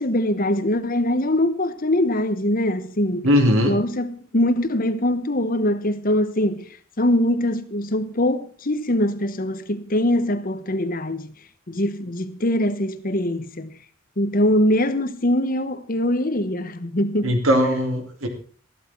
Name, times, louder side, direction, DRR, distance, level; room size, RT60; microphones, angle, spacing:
voice 1, 0.0-3.3 3.6-6.6 7.0-11.3 11.7-13.7 14.2-17.4, left 1 dB, 45° left, 1.2 m, -22 dB
voice 2, 3.2-3.8 17.2-18.3, equal, 85° right, 3.8 m, -19 dB
14.5 x 12.5 x 4.5 m
head